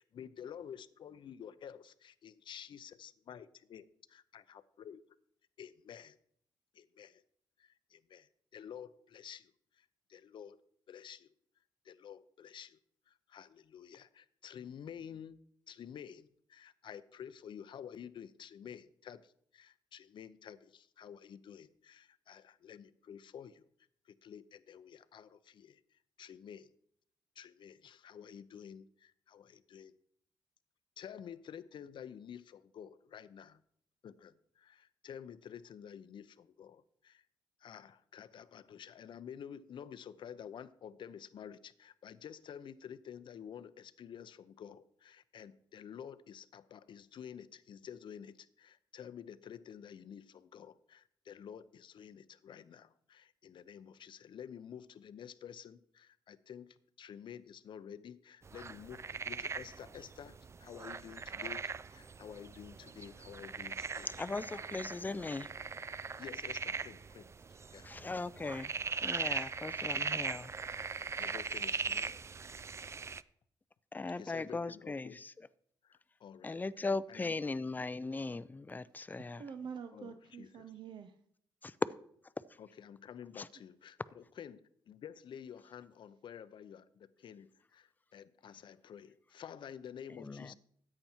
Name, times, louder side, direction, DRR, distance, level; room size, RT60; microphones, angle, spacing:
voice 1, 0.0-3.8 4.1-5.0 5.6-6.2 6.7-7.2 7.6-9.5 9.8-10.6 10.9-11.3 11.8-12.8 13.1-23.6 24.2-25.8 26.2-26.7 27.4-29.9 31.0-33.6 34.0-37.2 37.6-64.1 64.7-64.8 66.2-67.3 67.7-67.9 69.8-70.0 71.2-72.2 74.2-75.2 75.8-77.3 79.9-80.1 80.4-80.5 82.6-90.5, left 8 dB, 65° left, 0.7 m, -50 dB
sound 1, 58.4-73.2, right 5 dB, 30° right, 0.4 m, -40 dB
voice 2, 64.0-65.5 67.8-68.7 69.0-70.5 71.2-71.3 73.9-75.3 76.4-79.4 81.6-81.7 83.4-83.5 90.2-90.5, left 3 dB, 20° left, 0.5 m, -39 dB
voice 3, 79.0-81.2, right 6 dB, 60° right, 0.8 m, -47 dB
13.5 x 8.8 x 4.5 m
cardioid pair, 70°, 9 cm